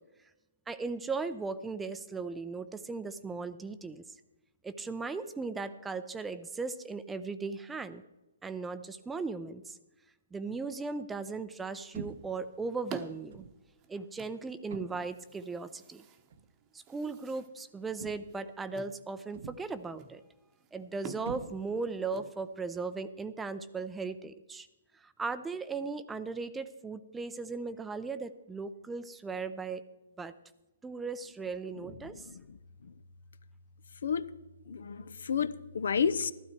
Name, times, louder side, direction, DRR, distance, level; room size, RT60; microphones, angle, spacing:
voice 1, 0.7-4.0 4.6-8.0 8.4-9.8 10.3-13.5 13.9-16.0 16.7-20.2 20.7-24.7 24.9-29.8 30.2-30.3 30.8-32.3, right 4 dB, 10° right, 13 dB, 0.6 m, -37 dB
sound 1, 11.9-22.9, right 7 dB, 25° right, 1.0 m, -50 dB
sound 2, 11.9-12.4 13.3-13.6 14.7-15.2 16.3-16.5 18.0-18.5 19.3-19.8 21.2-21.9, right 6 dB, 60° right, 0.9 m, -44 dB
voice 2, 32.1-32.6 32.8-32.9 34.0-34.2 34.7-36.3, left 6 dB, 70° left, 15 dB, 0.7 m, -31 dB
14.5 x 12.5 x 4.5 m, 1.0 s
hypercardioid pair, 140°, 0 cm